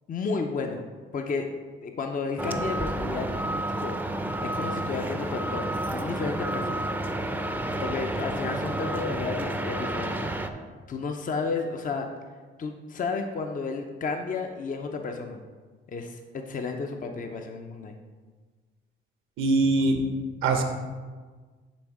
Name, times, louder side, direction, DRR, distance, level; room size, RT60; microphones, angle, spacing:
voice 1, 0.1-0.9 1.1-1.5 1.8-3.3 3.8-4.0 4.4-6.9 7.8-10.3 10.9-12.1 12.6-15.4 15.9-17.9, left 4 dB, 40° left, 4 dB, 0.7 m, -32 dB
sound 1, 2.4-10.5, right 1 dB, 10° right, 0.5 m, -30 dB
voice 2, 19.4-20.1 20.4-20.6, right 2 dB, 90° right, 4 dB, 1.0 m, -22 dB
10.0 x 3.5 x 4.8 m, 1.4 s
cardioid pair, 90°, 20 cm